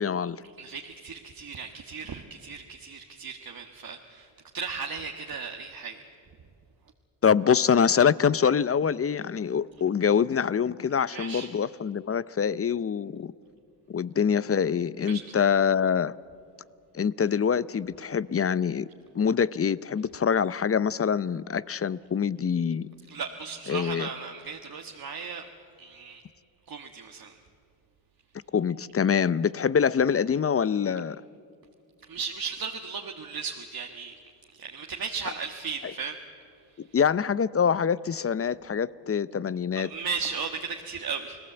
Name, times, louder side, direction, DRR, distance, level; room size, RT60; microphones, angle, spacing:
voice 1, 0.0-0.4 7.2-13.3 13.9-16.1 16.9-18.9 19.1-22.9 23.7-24.1 28.5-31.2 36.8-39.9, left 7 dB, 30° left, 0.6 m, -25 dB
voice 2, 0.6-4.3 4.5-6.0 11.1-11.5 15.0-15.2 23.1-25.5 25.8-26.2 26.7-27.3 32.1-34.2 34.5-36.2 39.8-41.4, right 5 dB, 50° right, 1.5 m, -36 dB
29.0 x 18.0 x 8.0 m
supercardioid pair, 60°, 45 cm